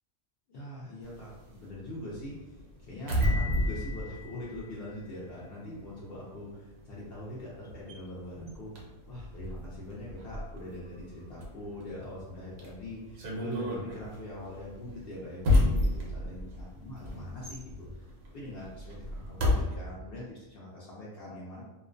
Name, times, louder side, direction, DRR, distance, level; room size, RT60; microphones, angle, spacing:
voice 1, 0.5-18.0 18.3-21.6, left 1 dB, 65° left, -7 dB, 0.6 m, -43 dB
sound 1, 1.0-5.4 5.7-19.6, left 1 dB, 70° right, 0.9 m, -32 dB
Piano, 3.2-5.2, left 4 dB, 50° right, 0.5 m, -43 dB
2.4 x 2.1 x 2.4 m, 1.2 s
omnidirectional pair, 1.4 m